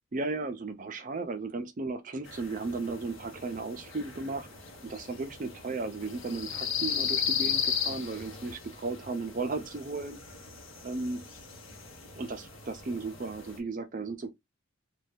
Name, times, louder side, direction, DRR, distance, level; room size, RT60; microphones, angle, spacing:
voice 1, 0.1-4.5 4.8-10.2 10.8-11.2 12.2-14.3, right 3 dB, 40° right, 0.4 m, -35 dB
sound 1, 2.2-13.6, left 7 dB, 70° left, 0.8 m, -36 dB
2.6 x 2.2 x 3.4 m
head